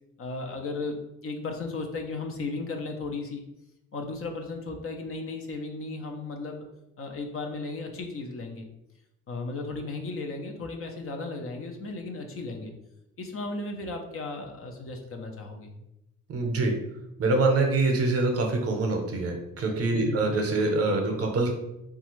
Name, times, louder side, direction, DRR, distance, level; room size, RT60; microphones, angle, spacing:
voice 1, 0.2-3.4 3.9-6.7 7.0-8.7 9.3-12.7 13.2-15.8 19.9-20.3, left 3 dB, 45° left, 3 dB, 0.6 m, -35 dB
voice 2, 16.3-16.7 17.2-21.5, right 2 dB, 50° right, 2 dB, 0.7 m, -25 dB
3.1 x 2.4 x 3.0 m, 0.89 s
cardioid pair, 90°, 30 cm